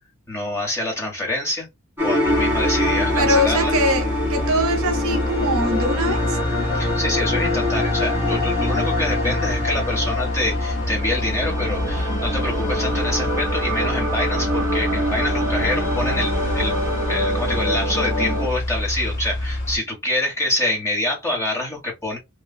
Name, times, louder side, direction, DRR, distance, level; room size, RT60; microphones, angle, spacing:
voice 1, 0.3-1.7 2.0-3.8 6.7-16.7 17.1-22.2, left 1 dB, 10° left, 1.2 m, -26 dB
sound 1, 2.0-18.5, left 1 dB, 10° right, 1.7 m, -24 dB
sound 2, 2.2-19.8, left 1 dB, 55° left, 1.0 m, -27 dB
voice 2, 3.2-6.4, equal, 70° right, 0.8 m, -22 dB
3.1 x 2.3 x 2.2 m
head